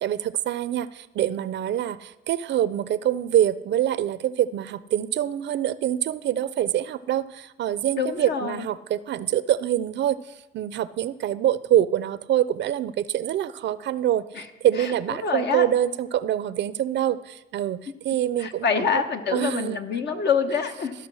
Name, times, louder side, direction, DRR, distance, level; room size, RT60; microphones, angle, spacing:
voice 1, 0.0-19.0 19.3-19.8 20.1-20.2, right 11 dB, 65° right, 16 dB, 0.5 m, -25 dB
voice 2, 8.0-8.7 14.3-14.5 14.8-15.7 18.4-20.9, left 6 dB, 60° left, 7 dB, 1.1 m, -26 dB
13.0 x 5.8 x 6.2 m, 1.0 s
cardioid pair, 90°, 20 cm